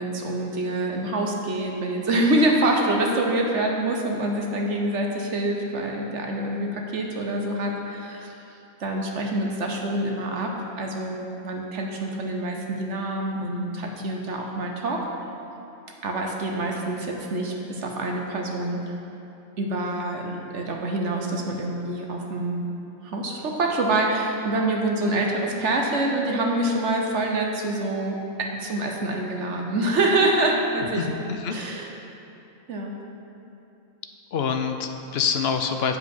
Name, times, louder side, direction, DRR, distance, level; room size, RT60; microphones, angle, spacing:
voice 1, 0.0-8.3 8.8-15.1 16.0-18.8 19.6-22.7 23.0-31.0 31.5-31.9 32.7-32.9, right 2 dB, 60° right, 1 dB, 1.1 m, -26 dB
voice 2, 31.0-31.5 34.3-36.0, left 6 dB, 60° left, 6 dB, 0.7 m, -26 dB
8.0 x 7.7 x 5.4 m, 2.8 s
omnidirectional pair, 1.5 m